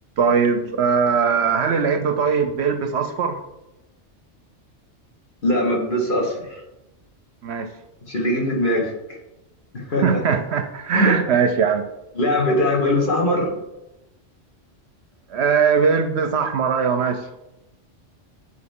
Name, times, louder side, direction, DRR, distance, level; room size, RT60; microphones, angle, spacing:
voice 1, 0.2-3.4 7.4-7.7 10.0-11.8 15.3-17.2, right 6 dB, 65° right, 7 dB, 0.8 m, -20 dB
voice 2, 5.4-6.6 8.1-8.9 9.7-10.2 10.9-11.1 12.1-13.5, left 1 dB, 45° left, -2 dB, 1.7 m, -21 dB
8.4 x 4.4 x 3.6 m, 0.93 s
omnidirectional pair, 1.3 m